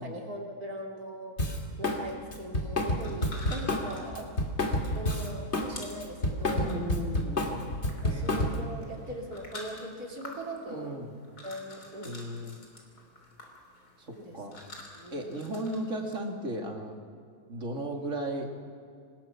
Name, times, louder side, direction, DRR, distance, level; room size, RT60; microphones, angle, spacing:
voice 1, 0.0-1.5 1.8-4.3 4.9-6.8 8.0-10.9 11.4-12.2 14.2-14.4 15.0-15.4, right 1 dB, 75° right, 0 dB, 3.8 m, -40 dB
Drum kit, 1.4-2.0 2.3-5.7 6.0-8.7, left 1 dB, 45° left, 2.6 m, -29 dB
sound 1, 3.0-16.1, left 2 dB, 85° left, 4.1 m, -49 dB
voice 2, 6.5-7.7 8.1-9.2 10.7-11.2 12.0-12.6 14.0-14.6 15.1-17.0 17.5-18.5, right 1 dB, 55° right, 2 dB, 2.9 m, -36 dB
26.0 x 19.5 x 5.9 m, 2.3 s
omnidirectional pair, 1.6 m